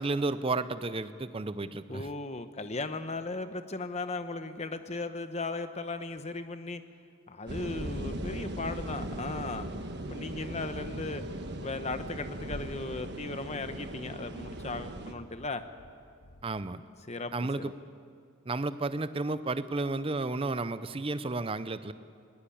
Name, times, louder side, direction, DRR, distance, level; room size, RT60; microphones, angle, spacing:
voice 1, 0.0-2.1 16.4-16.8 17.3-17.7 18.5-21.9, right 3 dB, 25° right, 13 dB, 0.6 m, -32 dB
voice 2, 1.9-6.8 7.3-9.7 10.1-11.2 11.5-15.6 17.1-17.3 17.6-17.7, left 3 dB, 30° left, 10 dB, 0.9 m, -37 dB
sound 1, 7.5-15.1, right 1 dB, 50° right, 1.4 m, -38 dB
sound 2, 11.9-12.1 12.4-12.5 12.8-13.3 13.6-13.8 14.1-14.2 14.5-14.6 14.9-15.1 15.4-15.5 15.8-15.9 16.2-16.4, left 1 dB, 80° left, 1.9 m, -55 dB
20.5 x 19.0 x 8.7 m, 2.3 s
head